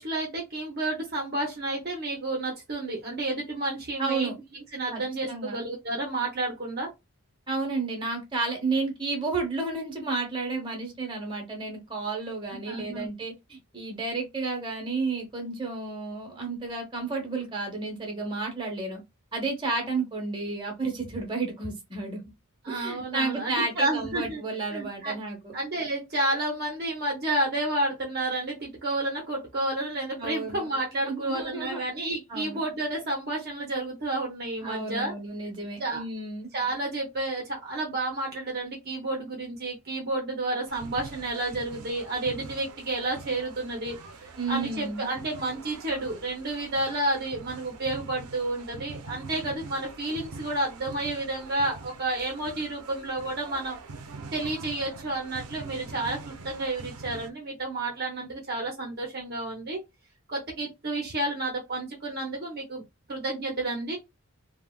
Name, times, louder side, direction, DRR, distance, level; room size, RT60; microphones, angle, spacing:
voice 1, 0.0-6.9 12.7-13.1 22.6-24.4 24.7-25.1 25.5-35.1 35.8-36.0 36.5-53.8 54.3-59.8 60.3-62.8 63.1-64.0, right 2 dB, 45° right, 0.6 m, -31 dB
voice 2, 4.0-4.3 4.9-5.0 5.3-5.6 7.5-19.0 19.3-22.2 22.7-25.5 30.2-30.7 31.0-31.8 32.3-32.6 34.6-36.5 44.4-45.1, right 3 dB, 20° right, 0.9 m, -31 dB
sound 1, 40.7-57.3, right 3 dB, 85° right, 0.5 m, -44 dB
3.3 x 2.1 x 2.2 m
head